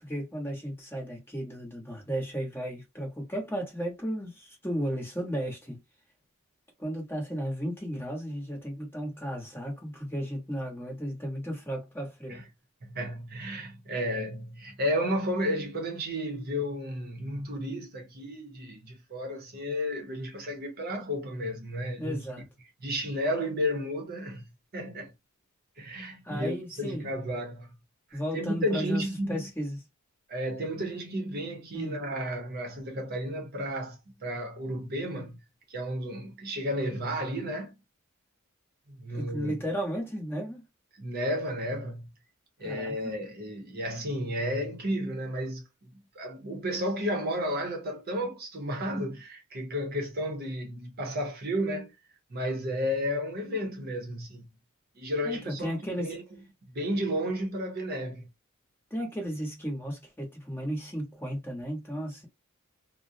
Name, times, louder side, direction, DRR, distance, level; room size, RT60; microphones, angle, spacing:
voice 1, 0.0-5.8 6.8-12.4 22.0-22.4 26.2-27.1 28.1-29.8 31.7-32.0 39.1-40.6 42.6-43.1 55.2-56.1 58.9-62.3, equal, 10° left, 0.9 m, -34 dB
voice 2, 12.8-22.3 22.8-25.1 25.8-27.7 28.1-29.4 30.3-35.4 35.7-37.7 38.9-39.6 41.0-42.1 42.6-45.6 46.1-51.9 52.3-54.5 55.0-56.2 56.7-58.3, equal, 45° right, 0.7 m, -32 dB
2.4 x 2.0 x 2.6 m
head